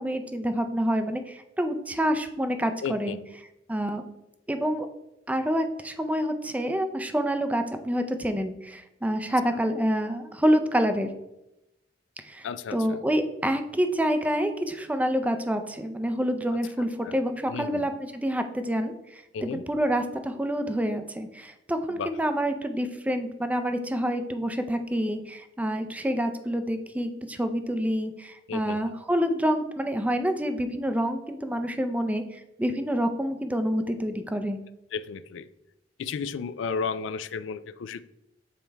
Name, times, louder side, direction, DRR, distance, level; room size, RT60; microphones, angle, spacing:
voice 1, 0.0-3.2 3.7-4.0 4.5-4.9 5.3-11.1 12.2-34.6, equal, 10° right, 8 dB, 0.5 m, -27 dB
voice 2, 2.8-3.2 12.4-13.0 17.0-17.2 17.5-17.9 19.3-19.6 21.9-22.1 28.5-29.0 34.9-35.5 36.0-38.0, left 5 dB, 85° left, 14 dB, 0.4 m, -33 dB
7.2 x 4.5 x 3.4 m, 0.90 s
head